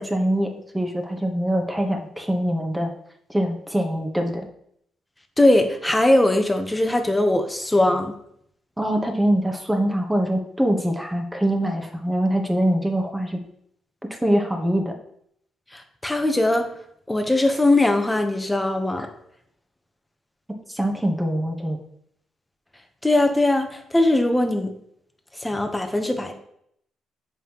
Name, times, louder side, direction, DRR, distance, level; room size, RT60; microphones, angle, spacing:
voice 1, 0.0-2.9 3.3-4.5 8.8-13.4 14.2-14.9 20.7-21.8, right 1 dB, 10° right, 3 dB, 1.2 m, -23 dB
voice 2, 5.4-8.2 15.7-16.7 17.1-19.1 23.0-24.7 25.3-26.3, left 1 dB, 10° left, 5 dB, 1.0 m, -20 dB
7.1 x 5.5 x 3.0 m, 0.71 s
cardioid pair, 90°, 0 cm